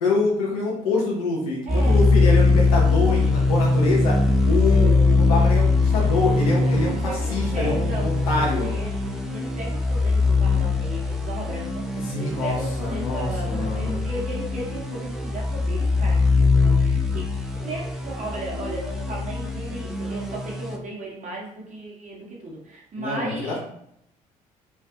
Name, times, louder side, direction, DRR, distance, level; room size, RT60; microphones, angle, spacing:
voice 1, 0.0-8.7 12.1-14.0 23.0-23.6, left 3 dB, 80° left, -2 dB, 0.7 m, -26 dB
sound 1, 1.7-20.8, left 3 dB, ahead, 0.4 m, -22 dB
voice 2, 1.7-2.1 7.0-11.8 12.2-23.6, right 2 dB, 45° right, -3 dB, 1.0 m, -35 dB
sound 2, 4.3-9.2, right 4 dB, 75° right, 0.5 m, -39 dB
2.5 x 2.5 x 2.4 m, 0.73 s
hypercardioid pair, 50°, 18 cm